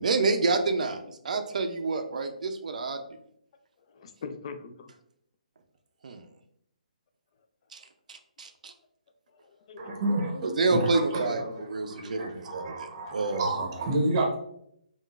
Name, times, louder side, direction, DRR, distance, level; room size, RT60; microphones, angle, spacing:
voice 1, 0.0-3.0 6.0-6.2 7.7-7.8 8.1-8.7 10.6-13.5, right 3 dB, 65° right, 7 dB, 0.4 m, -28 dB
voice 2, 3.9-4.9 9.4-10.5 11.2-12.1, left 5 dB, 45° left, 7 dB, 0.3 m, -43 dB
voice 3, 9.8-14.4, right 2 dB, 35° right, 1 dB, 0.7 m, -30 dB
3.7 x 2.4 x 2.3 m, 0.71 s
hypercardioid pair, 145°, 4 cm